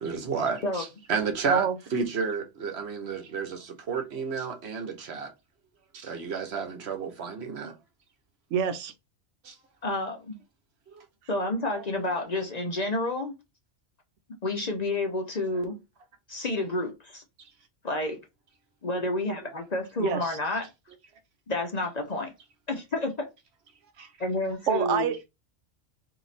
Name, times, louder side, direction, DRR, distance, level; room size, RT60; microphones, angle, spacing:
voice 1, 0.0-5.3 5.9-7.7 9.4-9.5 10.9-11.0 24.0-24.1, right 5 dB, 65° right, 1.1 m, -31 dB
voice 2, 8.5-8.9 20.0-20.2 24.7-25.3, right 8 dB, 85° right, 0.9 m, -26 dB
voice 3, 9.8-10.4 11.3-13.3 14.4-15.8 16.3-17.2 17.8-18.2 18.8-20.7 21.5-22.3 22.7-23.3 24.2-25.1, left 2 dB, 40° left, 0.7 m, -29 dB
3.0 x 2.8 x 4.1 m
omnidirectional pair, 1.2 m